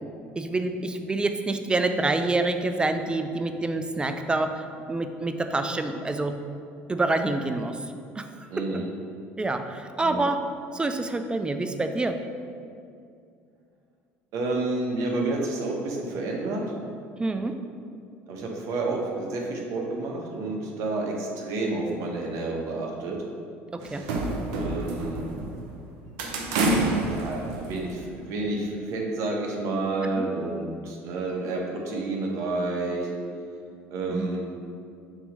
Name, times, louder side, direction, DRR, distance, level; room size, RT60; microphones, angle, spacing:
voice 1, 0.4-6.4 6.9-7.8 8.2-8.5 9.4-10.4 10.7-12.2 17.2-17.6 23.7-24.0 30.2-30.3 34.1-34.3, right 2 dB, 15° right, 7 dB, 0.5 m, -27 dB
voice 2, 8.5-8.9 10.0-10.2 14.3-16.7 18.3-23.2 24.5-25.2 27.1-33.1 33.9-34.5, right 2 dB, 65° right, 0 dB, 1.2 m, -30 dB
sound 1, 23.8-25.8 26.2-28.1, right 2 dB, 80° right, 0.8 m, -28 dB
6.9 x 3.0 x 5.4 m, 2.4 s
supercardioid pair, 80°, 6 cm